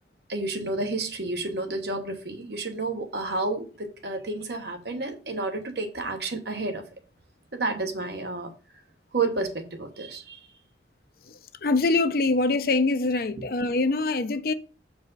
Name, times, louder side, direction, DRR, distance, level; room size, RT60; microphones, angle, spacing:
voice 1, 0.3-6.8 7.5-8.5 9.1-10.4, right 3 dB, 65° right, 1.1 m, -30 dB
voice 2, 11.3-14.5, left 3 dB, 55° left, 0.6 m, -24 dB
6.5 x 4.8 x 3.9 m
head